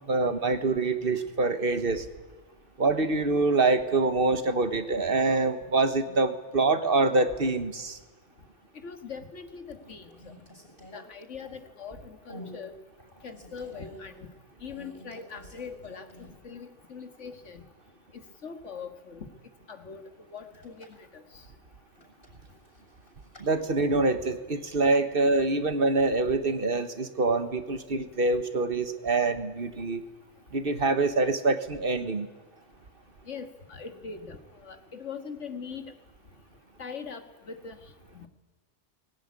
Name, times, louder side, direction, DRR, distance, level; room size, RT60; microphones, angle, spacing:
voice 1, 0.1-2.1 2.8-8.0 23.4-30.0 30.5-32.3, right 3 dB, 50° right, 10 dB, 1.5 m, -25 dB
voice 2, 8.8-10.3 10.9-12.7 13.2-14.3 14.6-17.6 18.4-19.3 19.7-20.0 20.3-20.9 21.1-21.2 33.3-35.9 36.8-37.8 38.1-38.3, left 5 dB, 85° left, 8 dB, 2.1 m, -41 dB
sound 1, 8.9-9.3 9.7-11.8 12.3-12.6 13.0-14.0 14.7-16.5 16.8-16.9 20.4-21.1 22.0-23.5, equal, 50° left, 7.0 m, -49 dB
21.0 x 17.0 x 9.7 m, 1.2 s
omnidirectional pair, 1.2 m